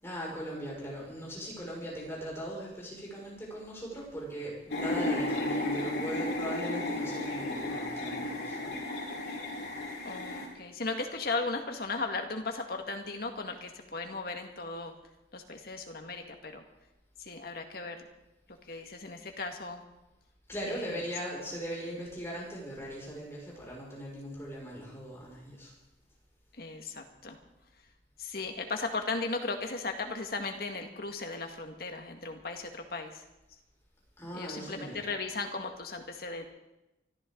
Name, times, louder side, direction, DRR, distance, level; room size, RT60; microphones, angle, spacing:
voice 1, 0.0-8.8 18.7-18.8 20.5-25.7 34.2-35.1, equal, 15° left, -4 dB, 6.0 m, -39 dB
sound 1, 4.7-10.5, left 1 dB, 75° left, 3.8 m, -33 dB
voice 2, 10.0-14.9 15.3-16.6 17.2-18.1 18.6-19.8 20.7-21.0 21.9-22.0 26.6-27.4 28.2-33.3 34.3-36.5, left 3 dB, 55° left, 4 dB, 1.9 m, -36 dB
24.0 x 14.0 x 3.9 m, 0.94 s
head